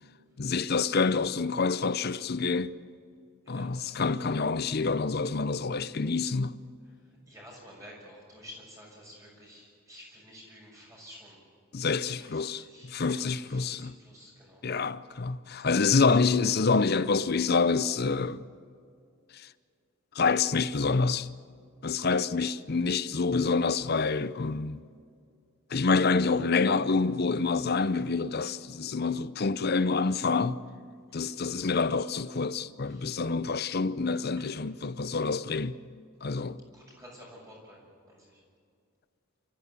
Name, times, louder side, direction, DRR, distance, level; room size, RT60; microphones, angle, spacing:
voice 1, 0.4-2.8 3.5-6.6 11.7-14.0 14.6-18.5 19.3-19.5 20.1-21.3 21.8-24.8 25.7-30.6 31.1-35.8 36.2-36.6, left 4 dB, 45° left, 0.6 m, -27 dB
voice 2, 7.3-11.4 12.0-14.6 15.6-16.2 31.2-31.3 32.9-33.2 34.4-34.6 36.7-38.4, equal, 15° right, 6.6 m, -51 dB
27.0 x 14.5 x 8.3 m
head